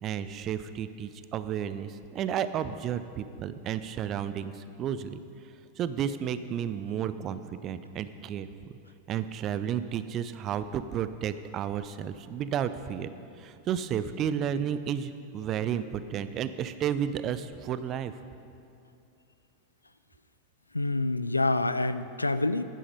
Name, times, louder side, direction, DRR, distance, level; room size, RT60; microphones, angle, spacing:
voice 1, 0.0-5.2 5.8-8.5 9.1-18.1, right 9 dB, 30° right, 13 dB, 0.4 m, -32 dB
voice 2, 20.7-22.6, left 2 dB, 80° left, 13 dB, 0.3 m, -27 dB
9.9 x 9.1 x 5.2 m, 2.6 s
figure-of-eight pair, 90°, 0 cm